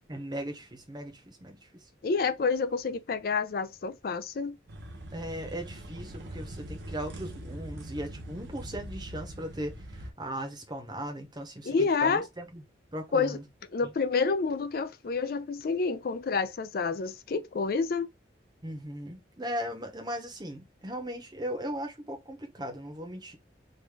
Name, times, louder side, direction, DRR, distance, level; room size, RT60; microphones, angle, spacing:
voice 1, 0.1-1.6 5.1-12.6 12.9-13.4 13.8-13.9 18.6-23.4, equal, 25° right, 0.8 m, -38 dB
voice 2, 2.0-4.6 11.7-12.3 13.1-13.4 13.7-18.1, left 4 dB, 50° left, 0.4 m, -28 dB
sound 1, 4.7-10.1, right 1 dB, 70° right, 0.8 m, -42 dB
3.3 x 2.4 x 3.4 m
head